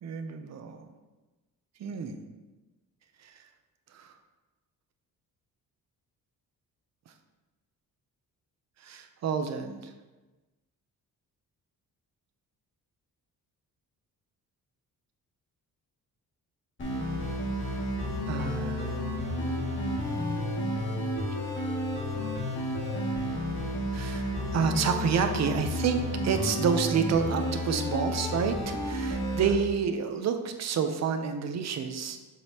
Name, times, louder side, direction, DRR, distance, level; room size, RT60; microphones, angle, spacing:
voice 1, 0.0-0.9 1.8-2.2 3.2-3.4 3.9-4.1 8.8-9.9 18.3-19.9 23.9-32.2, right 6 dB, 50° right, 7 dB, 0.6 m, -29 dB
sound 1, 16.8-29.5, left 1 dB, 35° left, 2.0 m, -31 dB
7.7 x 5.2 x 2.9 m, 1.2 s
wide cardioid pair, 170°, 36 cm